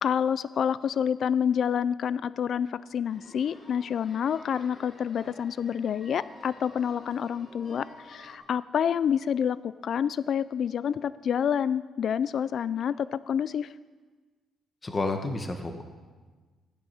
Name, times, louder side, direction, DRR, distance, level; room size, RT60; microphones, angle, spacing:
voice 1, 0.0-13.7, left 8 dB, 60° left, 17 dB, 0.3 m, -28 dB
sound 1, 3.1-8.4, left 1 dB, 45° left, 4.9 m, -50 dB
voice 2, 14.8-15.8, left 2 dB, 25° left, 5 dB, 1.3 m, -30 dB
16.0 x 9.8 x 5.6 m, 1.4 s
cardioid pair, 90°, 0 cm